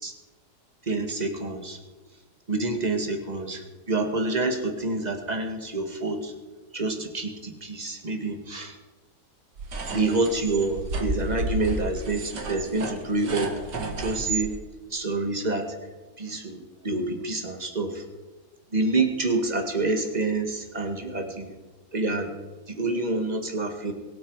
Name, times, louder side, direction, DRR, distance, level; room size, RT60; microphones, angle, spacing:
voice 1, 0.9-1.8 2.5-6.3 6.7-8.8 9.9-14.6 14.9-15.8 16.2-18.0 18.7-21.5 21.9-22.3 22.7-23.9, right 2 dB, 25° right, 4 dB, 2.0 m, -27 dB
sound 1, 9.6-14.5, right 2 dB, 80° right, 2.4 m, -32 dB
23.0 x 8.7 x 4.8 m, 1.3 s
omnidirectional pair, 1.8 m